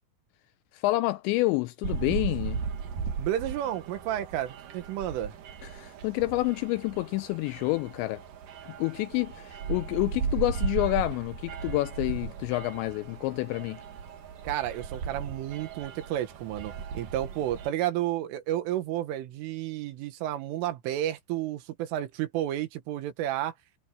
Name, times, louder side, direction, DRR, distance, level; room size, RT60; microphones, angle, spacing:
voice 1, 0.7-2.6 5.7-8.2 8.8-13.8, left 19 dB, 85° left, 2.6 m, -28 dB
sound 1, 1.8-17.7, right 6 dB, 55° right, 3.0 m, -36 dB
voice 2, 3.2-5.3 14.4-23.5, right 12 dB, 85° right, 4.1 m, -31 dB
omnidirectional pair, 5.6 m